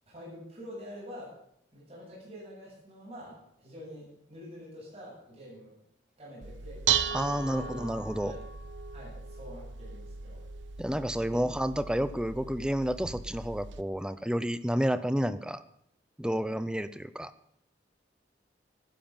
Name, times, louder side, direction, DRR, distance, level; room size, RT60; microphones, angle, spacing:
voice 1, 0.1-1.4 1.7-5.8 6.2-7.9 8.2-8.4 8.9-10.4 11.3-11.4, equal, 30° right, -6 dB, 7.7 m, -47 dB
Dishes pots and pans, 6.4-13.8, right 8 dB, 80° right, 0.8 m, -36 dB
voice 2, 7.1-8.3 10.8-15.6 16.2-17.3, equal, 5° right, 14 dB, 0.5 m, -30 dB
13.5 x 10.0 x 7.1 m, 0.74 s
head